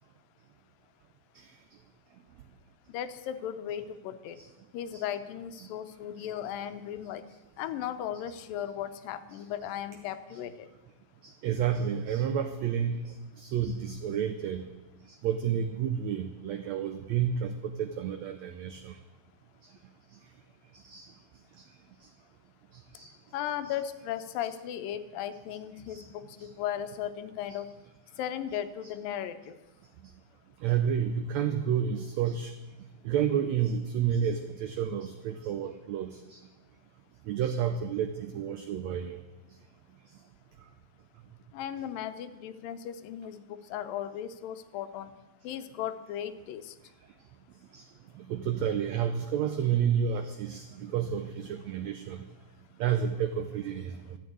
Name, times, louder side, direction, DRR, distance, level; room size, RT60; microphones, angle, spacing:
voice 1, 2.9-4.4 4.7-7.2 7.6-10.7 23.3-27.7 28.2-29.5 41.5-45.1 45.4-46.8, left 10 dB, 80° left, 11 dB, 2.5 m, -36 dB
voice 2, 11.2-14.7 15.2-19.0 20.8-21.1 22.9-23.1 25.9-26.1 26.4-26.5 30.6-32.5 33.0-36.4 37.3-39.2 47.7-47.8 48.2-52.2 52.8-54.2, right 8 dB, 85° right, 8 dB, 1.5 m, -30 dB
12.5 x 8.8 x 9.4 m, 1.1 s
omnidirectional pair, 4.1 m